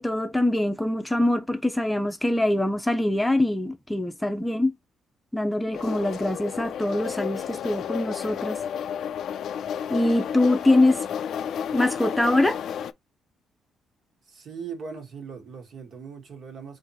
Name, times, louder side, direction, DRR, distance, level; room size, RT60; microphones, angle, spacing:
voice 1, 0.0-4.7 5.3-8.6 9.9-11.1 11.7-12.6, left 1 dB, 10° left, 0.6 m, -23 dB
sound 1, 5.7-12.9, left 8 dB, 70° left, 0.4 m, -32 dB
voice 2, 14.3-16.8, right 6 dB, 60° right, 1.5 m, -39 dB
3.7 x 2.7 x 4.1 m
cardioid pair, 90°, 0 cm